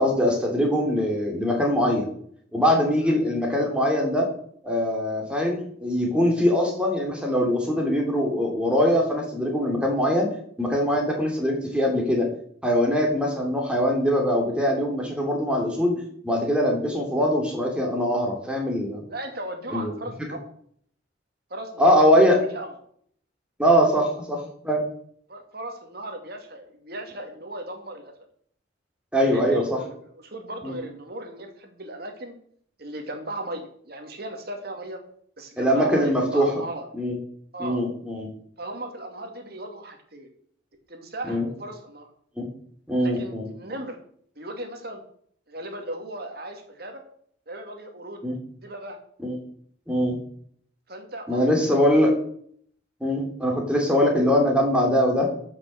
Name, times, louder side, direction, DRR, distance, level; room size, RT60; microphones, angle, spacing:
voice 1, 0.0-2.1 2.5-4.3 4.6-10.3 10.6-12.3 12.6-15.9 16.2-19.0 19.7-19.9 21.8-22.4 23.6-24.8 29.1-29.8 30.6-30.7 35.6-36.5 36.9-37.1 37.6-38.3 41.3-41.5 42.4-42.5 42.9-43.5 48.2-48.3 49.2-49.4 49.9-50.2 51.3-52.1 53.0-55.3, equal, 5° right, 0 dB, 2.9 m, -22 dB
voice 2, 19.1-20.4 21.5-22.8 25.3-28.1 29.3-32.3 32.8-35.0 35.4-36.9 37.5-37.8 38.6-40.3 40.9-42.1 43.0-44.0 44.4-45.0 45.5-47.0 47.5-48.2 48.6-49.0 50.9-52.1, right 1 dB, 50° right, 4 dB, 2.3 m, -37 dB
12.5 x 6.1 x 6.5 m, 0.62 s
head